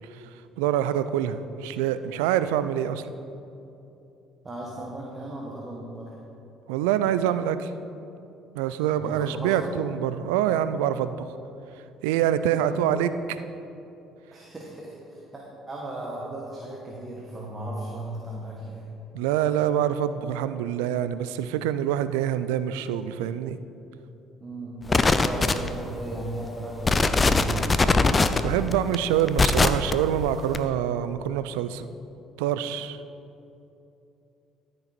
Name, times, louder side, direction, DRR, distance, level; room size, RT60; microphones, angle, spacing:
voice 1, 0.6-3.0 6.7-7.7 8.5-11.3 12.0-13.4 19.1-23.6 28.4-31.9 32.4-33.0, right 10 dB, 80° right, 13 dB, 0.4 m, -25 dB
voice 2, 4.4-6.1 9.0-9.8 12.4-12.9 14.3-18.8 24.4-27.7, right 1 dB, 30° right, -3 dB, 1.7 m, -36 dB
sound 1, 24.9-25.9 26.4-26.5 26.8-29.9 30.5-30.6, left 3 dB, 30° left, 0.6 m, -20 dB
13.5 x 6.9 x 4.4 m, 2.8 s
hypercardioid pair, 55°, 0 cm